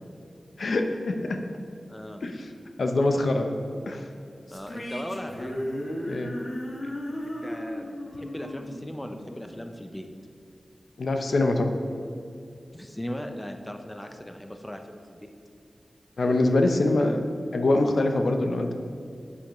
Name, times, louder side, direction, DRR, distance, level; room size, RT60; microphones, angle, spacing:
voice 1, 0.6-1.4 2.2-2.3 2.8-3.5 3.9-4.0 6.1-6.3 11.0-11.7 16.2-17.2 17.5-18.7, left 2 dB, 75° left, 5 dB, 0.7 m, -24 dB
voice 2, 1.9-2.2 4.5-5.6 7.2-10.1 12.7-15.3, equal, 10° left, 5 dB, 0.5 m, -38 dB
sound 1, 4.5-9.8, equal, 55° left, 1.6 m, -35 dB
9.9 x 8.4 x 3.1 m, 2.4 s
wide cardioid pair, 105°, 0 cm